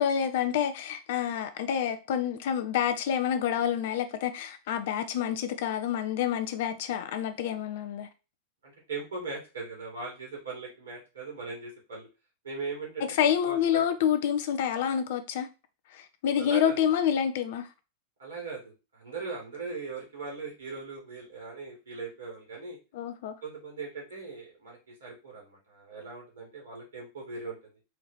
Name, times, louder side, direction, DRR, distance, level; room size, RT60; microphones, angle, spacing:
voice 1, 0.0-8.1 13.1-15.5 15.9-17.7 22.9-23.4, left 9 dB, 55° left, 0.6 m, -28 dB
voice 2, 8.6-12.1 12.4-13.0 13.4-13.8 16.4-16.8 18.2-22.8 23.4-27.6, right 4 dB, 70° right, 2.4 m, -39 dB
4.4 x 3.0 x 4.0 m
figure-of-eight pair, 90°, 0 cm